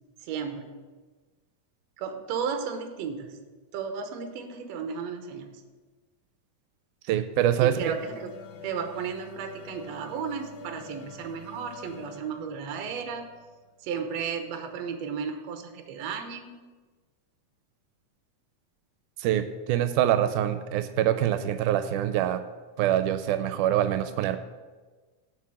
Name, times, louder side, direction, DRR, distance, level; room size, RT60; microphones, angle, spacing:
voice 1, 0.2-0.8 2.0-3.4 3.7-5.6 7.6-13.2 13.8-16.5, right 6 dB, 70° right, 6 dB, 1.9 m, -34 dB
voice 2, 7.1-7.9 19.2-22.4 22.8-24.4, right 11 dB, 85° right, 10 dB, 2.1 m, -25 dB
sound 1, 7.4-14.6, left 4 dB, 90° left, 2.3 m, -48 dB
7.5 x 6.2 x 7.5 m, 1.3 s
omnidirectional pair, 3.5 m